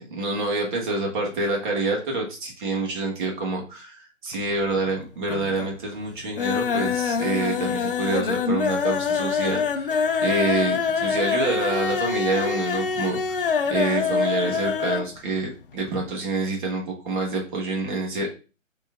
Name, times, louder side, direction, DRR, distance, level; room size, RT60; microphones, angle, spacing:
voice 1, 0.1-13.2 13.7-18.3, right 3 dB, 40° right, -1 dB, 1.4 m, -27 dB
sound 1, 4.3-4.9 5.2-5.8 6.1-15.1 15.4-15.5 15.8-15.9, left 6 dB, 45° left, 0.4 m, -25 dB
4.6 x 3.1 x 3.4 m, 0.33 s
figure-of-eight pair, 140°, 40 cm